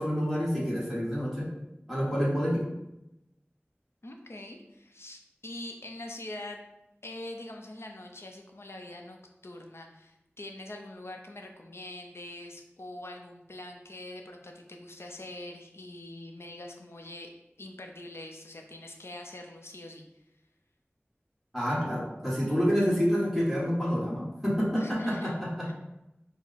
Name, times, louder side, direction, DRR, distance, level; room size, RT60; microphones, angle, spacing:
voice 1, 0.0-1.5 1.9-2.6 21.5-25.7, equal, ahead, -7 dB, 1.5 m, -28 dB
voice 2, 4.0-6.6 7.0-17.3 17.6-20.0 24.8-25.4 25.6-25.7, left 1 dB, 70° left, 2 dB, 0.6 m, -43 dB
4.8 x 2.1 x 4.1 m, 0.91 s
wide cardioid pair, 45°, 4 cm